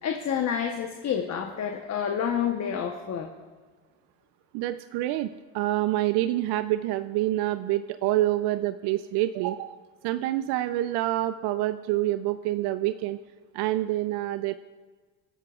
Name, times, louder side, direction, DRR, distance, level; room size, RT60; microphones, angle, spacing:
voice 1, 0.0-3.3, left 8 dB, 40° left, 4 dB, 1.1 m, -29 dB
voice 2, 4.5-9.8 10.0-13.2 13.5-14.5, right 15 dB, 65° right, 12 dB, 0.5 m, -27 dB
28.0 x 11.0 x 2.4 m, 1.4 s
supercardioid pair, 105°, 43 cm